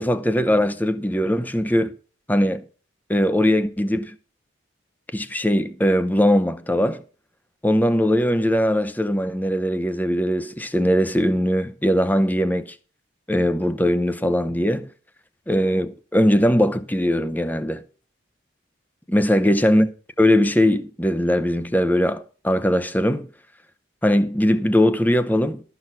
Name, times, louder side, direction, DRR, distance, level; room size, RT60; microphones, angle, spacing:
voice 1, 0.0-1.9 2.3-2.6 3.1-4.2 5.1-7.0 7.6-12.7 13.3-14.9 15.5-17.8 19.1-19.9 20.2-23.3 24.0-25.6, equal, 10° left, 0.7 m, -20 dB
12.5 x 6.0 x 6.0 m
head